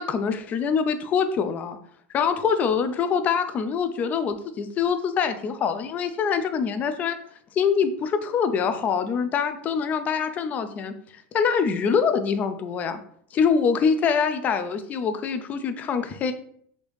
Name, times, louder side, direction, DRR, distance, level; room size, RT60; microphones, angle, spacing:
voice 1, 0.0-1.8 2.1-7.2 7.6-10.9 11.3-13.0 13.3-16.3, left 6 dB, 30° left, 9 dB, 0.3 m, -24 dB
3.2 x 2.6 x 3.3 m, 0.64 s
supercardioid pair, 145°, 6 cm